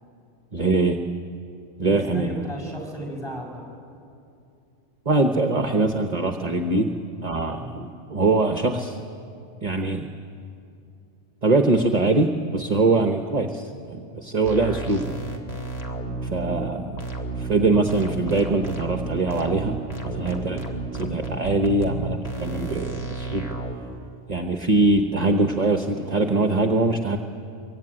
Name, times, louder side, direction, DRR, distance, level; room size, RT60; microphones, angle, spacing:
voice 1, 0.5-1.0 1.8-2.3 5.0-6.9 7.2-9.0 9.6-10.1 11.4-15.1 16.3-17.0 17.4-19.8 20.0-20.6 20.9-23.4 24.3-27.2, right 3 dB, 35° right, 6 dB, 1.2 m, -22 dB
voice 2, 1.8-3.6 7.5-7.7, right 1 dB, 5° left, 1 dB, 6.4 m, -35 dB
sound 1, 14.4-23.8, right 2 dB, 30° left, 3.2 m, -32 dB
25.5 x 23.5 x 9.9 m, 2.6 s
omnidirectional pair, 1.2 m